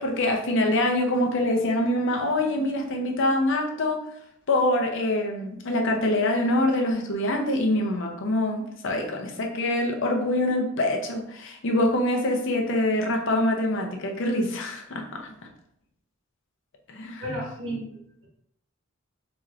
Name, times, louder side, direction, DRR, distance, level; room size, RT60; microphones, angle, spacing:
voice 1, 0.0-4.0 4.5-15.4 16.9-17.2, left 1 dB, 60° left, 2 dB, 0.6 m, -25 dB
voice 2, 17.2-18.3, equal, 70° right, -3 dB, 1.3 m, -33 dB
4.7 x 3.0 x 2.4 m, 0.74 s
head